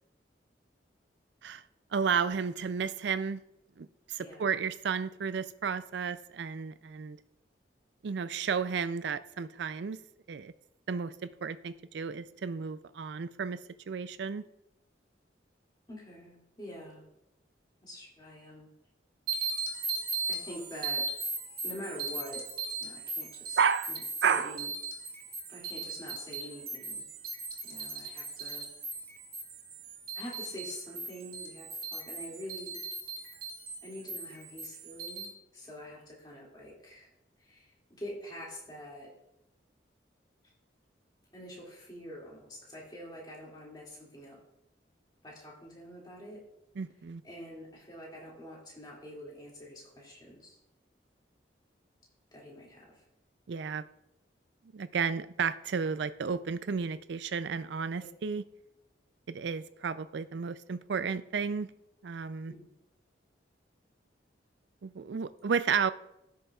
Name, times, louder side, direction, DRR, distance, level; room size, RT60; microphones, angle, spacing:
voice 1, 1.9-3.4 3.8-7.2 8.0-10.0 10.3-10.5 10.9-13.6 13.9-14.4 23.6-23.9 24.2-24.5 46.8-47.2 53.5-53.8 54.7-58.4 59.3-61.7 62.0-62.5 64.8-65.9, right 6 dB, 70° right, 14 dB, 0.4 m, -32 dB
voice 2, 15.9-17.0 17.8-18.7 20.3-21.1 21.6-22.4 22.8-23.6 23.9-24.7 25.5-27.0 27.6-28.7 30.1-32.8 33.8-37.1 37.4-39.1 41.3-44.4 45.2-46.4 47.2-50.6 52.3-53.0 58.0-58.1 62.5-62.7, equal, 25° left, -4 dB, 2.3 m, -46 dB
sound 1, 19.3-35.3, right 3 dB, 55° right, 2.2 m, -38 dB
15.5 x 6.5 x 2.4 m, 0.87 s
head